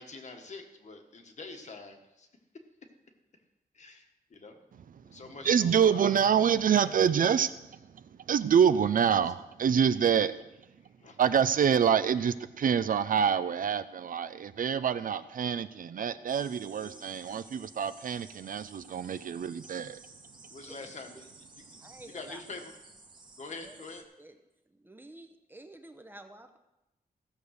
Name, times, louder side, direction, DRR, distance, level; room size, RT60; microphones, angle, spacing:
voice 1, 0.0-2.3 3.7-4.8 5.1-6.2 6.8-6.9 11.0-11.2 16.8-17.1 20.5-21.3 22.1-22.7 23.4-24.0, left 3 dB, 50° left, 4 dB, 1.5 m, -45 dB
voice 2, 5.4-7.5 8.3-10.3 11.2-20.0, right 8 dB, 65° right, 13 dB, 0.5 m, -26 dB
sound 1, 16.3-24.0, right 3 dB, 30° right, 1.3 m, -54 dB
voice 3, 21.8-22.4 23.6-23.8 24.2-24.4 24.7-26.6, right 1 dB, 15° right, 7 dB, 0.8 m, -50 dB
15.5 x 7.0 x 6.5 m, 0.95 s
wide cardioid pair, 165°, 16 cm